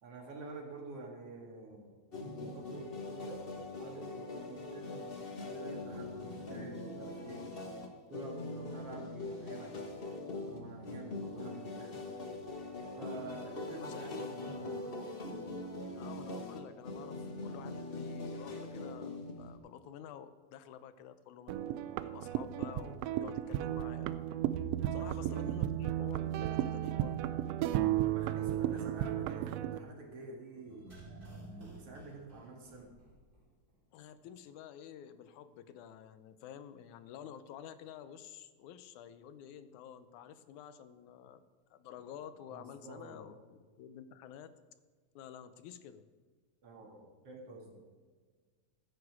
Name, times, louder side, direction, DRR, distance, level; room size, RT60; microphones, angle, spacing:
voice 1, 0.0-3.5 3.8-7.5 8.1-9.9 10.5-12.0 13.0-14.9 24.8-25.4 28.0-31.0 31.6-32.9 42.5-43.4 46.6-47.8, right 2 dB, 55° right, 0 dB, 2.9 m, -48 dB
sound 1, 2.1-19.6, left 2 dB, 75° left, 0.5 m, -42 dB
voice 2, 13.7-14.3 16.0-21.6 22.1-24.1 24.9-27.2 33.9-41.4 41.7-44.6 45.2-46.0, left 9 dB, 90° left, 11 dB, 2.2 m, -50 dB
sound 2, 21.5-29.8, right 12 dB, 80° right, 1.5 m, -34 dB
sound 3, 30.6-33.4 33.7-33.8, right 2 dB, 15° right, 3.2 m, -51 dB
14.5 x 9.7 x 4.8 m, 1.4 s
omnidirectional pair, 3.3 m